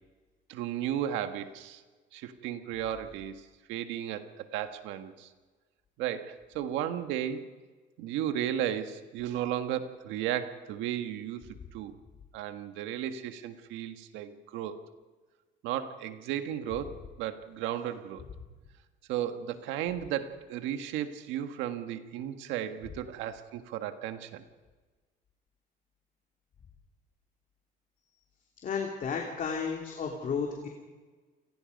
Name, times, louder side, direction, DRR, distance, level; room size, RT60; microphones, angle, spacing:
voice 1, 0.5-1.8 2.1-5.3 6.0-7.5 8.0-11.4 11.7-12.0 12.3-14.8 15.6-18.2 19.1-24.4, right 10 dB, 85° right, 8 dB, 1.6 m, -34 dB
voice 2, 28.6-30.7, left 6 dB, 45° left, 1 dB, 3.1 m, -33 dB
28.5 x 18.5 x 5.3 m, 1.3 s
cardioid pair, 110°, 19 cm